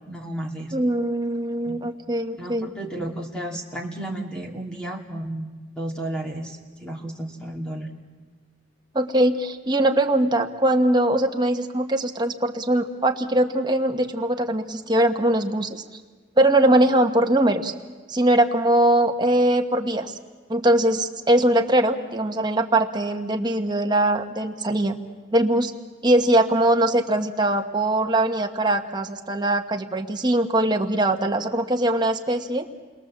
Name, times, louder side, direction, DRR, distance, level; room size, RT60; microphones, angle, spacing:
voice 1, 0.1-0.7 1.7-1.8 2.4-7.9, right 1 dB, 5° left, 0 dB, 2.5 m, -33 dB
voice 2, 0.7-2.7 8.9-15.8 16.4-17.7 18.1-20.2 20.5-25.0 25.3-25.7 26.0-32.7, right 1 dB, 25° right, 5 dB, 1.2 m, -21 dB
29.0 x 21.5 x 7.4 m, 1.4 s
head